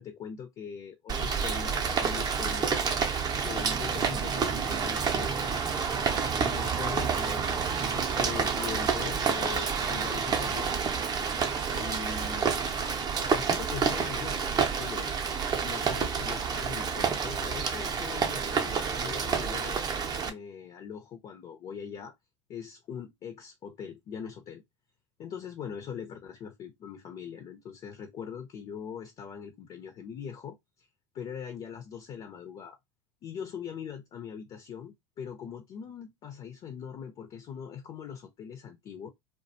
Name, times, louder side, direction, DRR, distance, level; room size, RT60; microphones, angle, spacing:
voice 1, 0.0-2.8 3.4-5.7 6.4-10.8 11.7-12.5 13.2-15.1 15.6-19.8 20.3-22.1 22.5-24.6 25.2-30.6 31.1-32.8 33.2-39.1, left 7 dB, 40° left, 0.7 m, -41 dB
Rain, 1.1-20.3, right 6 dB, 25° right, 0.6 m, -29 dB
2.3 x 2.2 x 2.7 m
hypercardioid pair, 90°, 15 cm